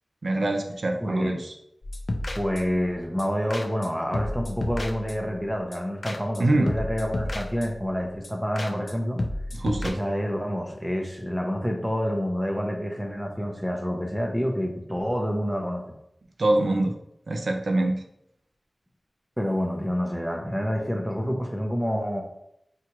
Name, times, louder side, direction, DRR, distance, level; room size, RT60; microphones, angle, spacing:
voice 1, 0.2-1.5 6.4-6.7 9.5-10.0 16.4-16.9 17.3-18.0, right 2 dB, 75° right, 3 dB, 0.5 m, -24 dB
voice 2, 1.0-1.4 2.3-9.2 9.8-15.8 19.4-22.2, equal, 5° right, 2 dB, 0.6 m, -28 dB
sound 1, 1.8-2.9 3.2-3.3 3.5-3.9 4.1-5.4 5.7-6.4 6.7-7.9 8.2-8.3 8.6-8.9 9.2-9.9, left 1 dB, 55° left, 0.4 m, -31 dB
4.4 x 2.4 x 2.9 m, 0.77 s
wide cardioid pair, 70°, 0 cm